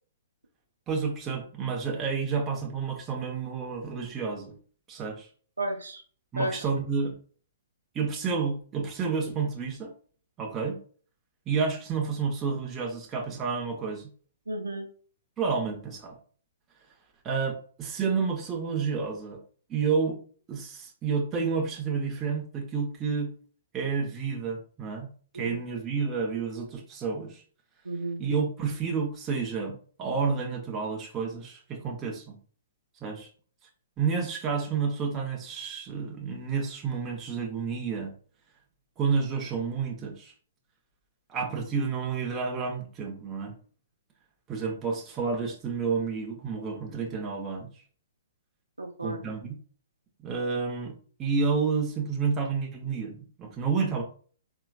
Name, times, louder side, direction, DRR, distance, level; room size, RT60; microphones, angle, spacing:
voice 1, 0.9-4.5 4.9-5.3 6.3-7.1 7.9-9.9 10.4-10.8 11.5-14.1 15.4-16.2 17.2-19.4 19.7-20.2 20.5-23.3 23.7-25.1 25.3-27.4 28.2-32.4 33.0-33.3 34.0-38.1 39.0-40.3 41.3-43.5 44.5-47.7 49.0-49.5 50.2-50.9 51.2-54.0, right 5 dB, 20° right, 1 dB, 1.2 m, -30 dB
voice 2, 5.6-6.0 6.4-6.8 14.5-14.9 25.3-25.6 27.8-28.2 48.8-49.2, right 1 dB, 85° right, 4 dB, 0.8 m, -33 dB
4.8 x 3.6 x 2.4 m, 0.42 s
figure-of-eight pair, 120°, 0 cm